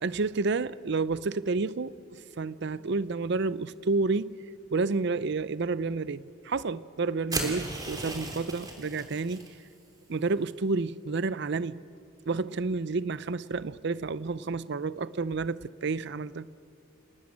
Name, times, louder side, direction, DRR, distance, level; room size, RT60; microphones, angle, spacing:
voice 1, 0.0-4.4 4.7-9.5 10.1-11.8 12.3-16.5, right 3 dB, 55° right, 0.5 m, -30 dB
sound 1, 7.3-9.5, right 2 dB, 20° right, 3.2 m, -35 dB
28.0 x 19.0 x 8.7 m
head